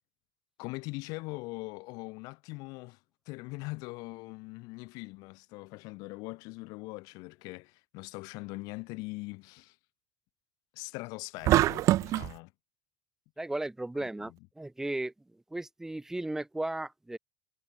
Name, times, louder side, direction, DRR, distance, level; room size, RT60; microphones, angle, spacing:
voice 1, 0.6-3.0 3.3-9.8 10.7-12.5 14.0-14.4, left 25 dB, 70° left, 5.4 m, -41 dB
sound 1, 11.4-12.3, right 15 dB, 50° right, 0.6 m, -24 dB
voice 2, 13.4-15.1 15.5-17.2, right 2 dB, 5° right, 1.7 m, -35 dB
supercardioid pair, 115°, 7 cm